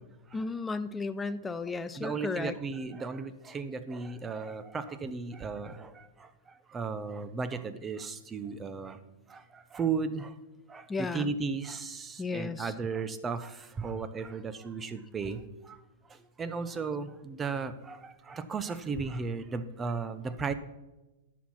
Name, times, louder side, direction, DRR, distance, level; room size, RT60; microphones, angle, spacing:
voice 1, 0.3-2.6 10.9-11.3 12.2-12.8, left 3 dB, 10° left, 11 dB, 0.4 m, -34 dB
voice 2, 1.9-9.0 9.3-10.4 10.7-15.8 16.1-20.5, right 5 dB, 20° right, 12 dB, 0.8 m, -35 dB
10.0 x 6.4 x 5.7 m, 1.1 s
hypercardioid pair, 125°, 0 cm